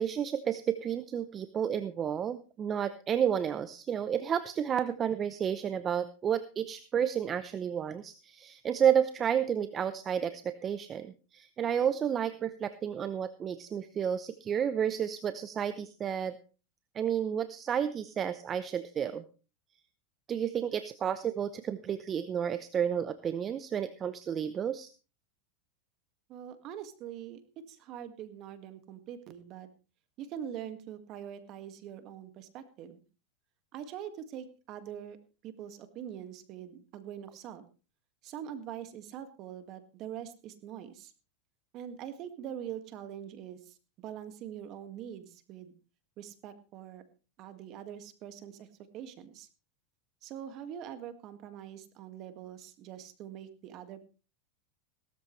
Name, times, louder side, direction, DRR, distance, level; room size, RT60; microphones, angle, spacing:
voice 1, 0.0-16.4 16.9-19.2 20.3-24.9, right 8 dB, 30° right, 12 dB, 0.8 m, -31 dB
voice 2, 26.3-29.7 30.2-33.0 33.7-35.2 35.4-37.6 38.2-41.1 41.7-45.7 46.2-47.0 47.4-48.7 48.9-49.5 50.2-54.0, right 9 dB, 45° right, 10 dB, 1.9 m, -43 dB
17.0 x 13.5 x 3.2 m, 0.34 s
supercardioid pair, 125°, 0 cm